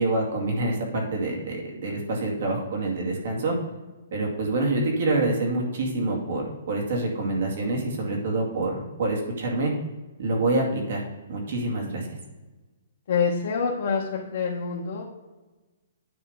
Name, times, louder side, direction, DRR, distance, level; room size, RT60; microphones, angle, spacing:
voice 1, 0.0-3.5 4.1-9.7 10.2-11.0 11.3-12.1, right 2 dB, 60° right, -1 dB, 2.3 m, -26 dB
voice 2, 13.1-15.0, left 5 dB, 60° left, -2 dB, 1.1 m, -26 dB
9.1 x 5.3 x 3.7 m, 1.2 s
hypercardioid pair, 165°, 0 cm